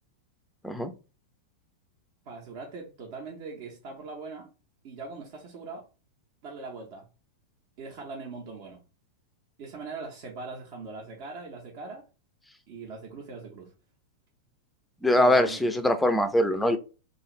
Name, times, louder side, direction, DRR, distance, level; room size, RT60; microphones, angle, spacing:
voice 1, 2.3-4.5 4.8-5.9 6.4-7.0 7.8-8.8 9.6-12.1 12.7-13.7 15.1-15.7, right 3 dB, 45° right, 0.6 m, -40 dB
voice 2, 15.0-16.8, left 1 dB, 5° left, 0.4 m, -22 dB
2.5 x 2.4 x 2.9 m
figure-of-eight pair, 95°, 0 cm